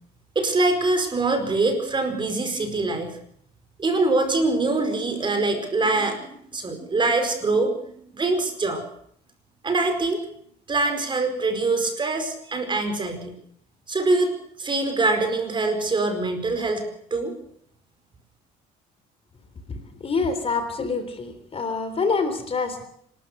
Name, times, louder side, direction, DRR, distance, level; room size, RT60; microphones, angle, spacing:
voice 1, 0.3-3.1 3.8-7.8 8.1-8.8 9.6-10.2 10.7-13.3 13.9-14.3 14.6-16.8 17.1-17.3, right 3 dB, 30° right, 7 dB, 4.8 m, -23 dB
voice 2, 19.9-22.8, left 4 dB, 35° left, 9 dB, 3.6 m, -26 dB
27.0 x 13.0 x 8.1 m, 0.66 s
cardioid pair, 110°, 17 cm